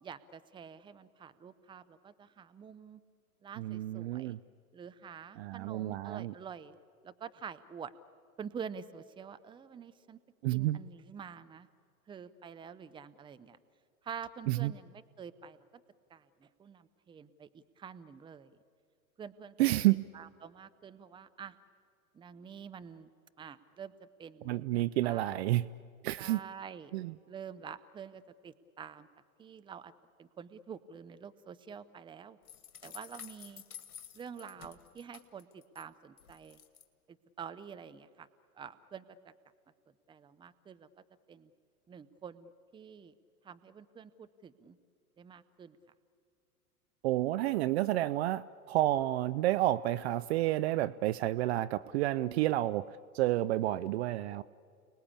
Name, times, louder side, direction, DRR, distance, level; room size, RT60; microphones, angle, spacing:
voice 1, 0.0-3.0 3.4-4.4 4.7-6.8 7.0-7.9 8.4-10.2 10.5-11.7 12.1-13.6 14.0-15.6 16.1-18.6 19.2-19.6 20.1-21.6 22.1-23.1 23.4-25.4 26.2-26.9 27.3-29.1 29.4-29.9 30.2-32.4 32.8-33.6 34.1-36.6 37.1-38.3 38.5-39.3 40.1-40.9 41.3-41.5 41.9-43.1 43.4-44.8 45.2-45.8, right 7 dB, 10° right, 13 dB, 0.7 m, -47 dB
voice 2, 3.6-4.4 5.4-6.3 10.4-10.8 14.5-14.7 19.6-20.0 24.4-25.7 26.0-26.4 26.9-27.1 47.0-54.4, right 15 dB, 45° right, 16 dB, 0.5 m, -30 dB
sound 1, 32.4-35.8 36.2-36.8, left 9 dB, 70° left, 1.8 m, -51 dB
29.5 x 19.5 x 8.7 m, 2.3 s
figure-of-eight pair, 95°, 44 cm